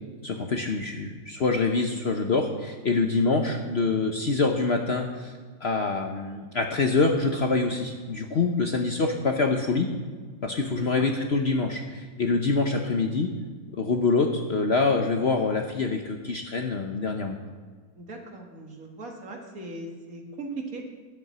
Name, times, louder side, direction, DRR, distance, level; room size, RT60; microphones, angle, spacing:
voice 1, 0.2-5.3 5.6-9.9 10.4-13.3 13.7-17.4, left 3 dB, 50° left, 3 dB, 0.9 m, -25 dB
voice 2, 10.7-11.1 18.0-20.8, right 2 dB, 55° right, 1 dB, 2.1 m, -39 dB
11.0 x 7.8 x 7.2 m, 1.5 s
omnidirectional pair, 1.8 m